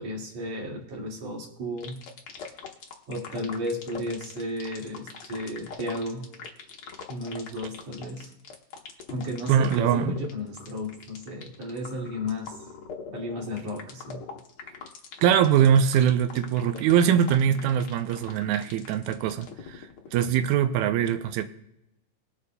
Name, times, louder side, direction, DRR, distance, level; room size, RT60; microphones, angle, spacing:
voice 1, 0.0-2.0 3.1-6.3 7.1-8.3 9.1-12.6 13.0-14.2, left 1 dB, 50° right, 3.1 m, -34 dB
sound 1, 1.8-20.5, left 5 dB, 75° left, 1.2 m, -42 dB
voice 2, 9.5-10.2 15.2-21.4, right 9 dB, 90° right, 1.6 m, -22 dB
21.0 x 8.1 x 2.2 m
omnidirectional pair, 4.1 m